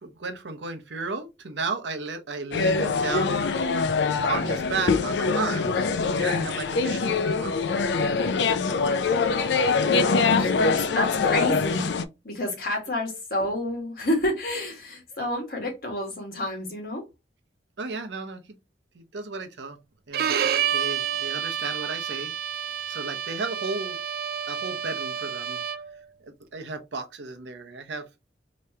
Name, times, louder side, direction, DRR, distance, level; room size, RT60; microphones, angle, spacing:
voice 1, 0.0-3.4 4.3-5.7 6.0-7.7 17.8-18.4 18.9-19.8 20.1-22.3 22.9-24.0 24.5-25.6 26.2-28.1, right 4 dB, 85° right, 0.7 m, -34 dB
sound 1, 2.5-12.0, left 4 dB, 80° left, 0.4 m, -24 dB
voice 2, 9.7-12.0 12.2-17.1, left 1 dB, 55° left, 1.7 m, -29 dB
Bowed string instrument, 20.1-26.0, right 9 dB, 55° right, 0.4 m, -29 dB
3.4 x 3.0 x 2.7 m
head